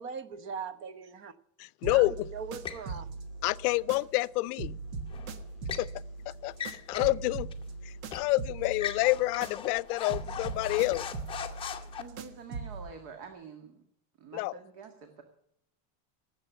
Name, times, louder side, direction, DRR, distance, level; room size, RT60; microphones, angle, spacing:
voice 1, 0.0-1.3 1.8-3.1, right 6 dB, 25° right, 0.8 m, -40 dB
voice 2, 1.6-2.3 3.4-4.8 5.8-5.9 6.3-6.5 6.9-7.5 8.1-11.1 14.3-14.5, left 20 dB, 80° left, 0.6 m, -28 dB
sound 1, 1.8-4.3 4.6-9.8 10.1-12.9, right 4 dB, 70° right, 1.6 m, -41 dB
sound 2, 2.6-2.9 5.1-5.9 6.5-7.2 7.5-7.6 8.1-8.3 8.7-12.0, left 8 dB, 10° left, 0.8 m, -39 dB
voice 3, 12.0-13.8 14.2-15.2, right 6 dB, 50° right, 2.0 m, -47 dB
18.0 x 7.9 x 6.8 m
cardioid pair, 170°, 45 cm